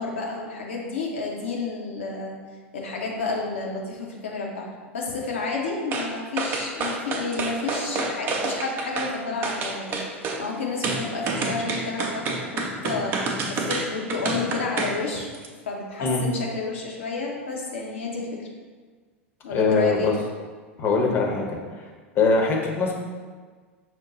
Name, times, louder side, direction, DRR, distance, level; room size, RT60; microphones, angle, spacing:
voice 1, 0.0-2.4 2.7-4.7 4.9-15.3 15.7-18.5 19.4-20.1, left 4 dB, 70° left, -1 dB, 0.9 m, -30 dB
sound 1, 5.9-6.1 6.4-9.1 9.4-10.4 10.8-15.0 15.3-15.5, right 3 dB, 30° right, 0.6 m, -28 dB
voice 2, 19.5-20.1 20.8-21.5 22.1-22.9, left 4 dB, 30° left, 0 dB, 0.8 m, -21 dB
6.0 x 2.2 x 3.9 m, 1.5 s
figure-of-eight pair, 85°, 7 cm